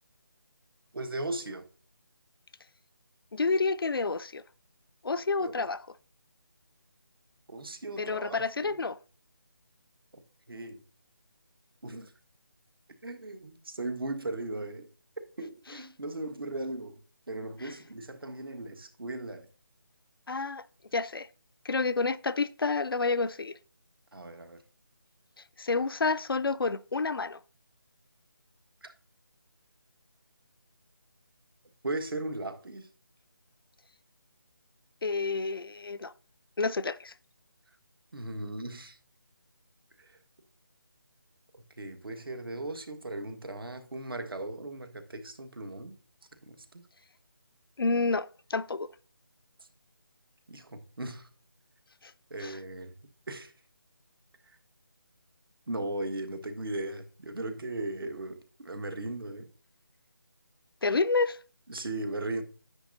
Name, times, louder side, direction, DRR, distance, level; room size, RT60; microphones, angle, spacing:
voice 1, 0.9-1.7 5.4-5.7 7.5-8.8 10.1-10.2 10.5-10.8 11.8-12.1 13.0-14.9 15.4-17.0 17.3-19.5 24.1-24.6 28.8-28.9 31.8-32.9 38.1-39.0 40.0-40.2 41.8-46.0 46.4-46.9 50.5-51.3 52.3-53.0 53.3-53.5 55.7-59.5 61.7-62.4, right 2 dB, 80° right, 1.5 m, -37 dB
voice 2, 3.3-4.4 5.0-5.8 8.0-9.0 20.3-20.6 20.9-21.3 21.6-23.6 25.6-27.4 35.0-36.1 36.6-37.1 47.8-48.9 52.4-52.6 60.8-61.4, left 4 dB, 85° left, 0.5 m, -29 dB
9.8 x 8.6 x 2.6 m
figure-of-eight pair, 165°, 12 cm